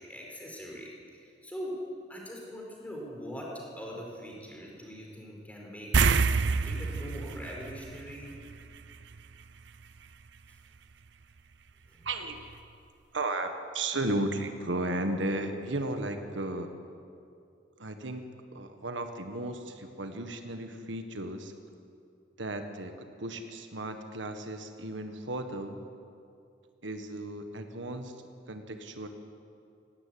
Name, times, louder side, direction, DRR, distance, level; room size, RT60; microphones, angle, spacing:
voice 1, 0.0-1.8 2.1-8.3 11.9-12.1, equal, 10° left, -1 dB, 4.4 m, -42 dB
sound 1, 5.9-8.7 9.0-9.2 12.1-12.2 12.5-12.6, right 4 dB, 70° right, 0.7 m, -27 dB
voice 2, 12.0-12.4 13.1-16.7 17.8-21.5 22.4-25.8 26.8-28.2 28.5-29.1, right 2 dB, 90° right, 6 dB, 1.6 m, -35 dB
17.0 x 17.0 x 9.6 m, 2.5 s
head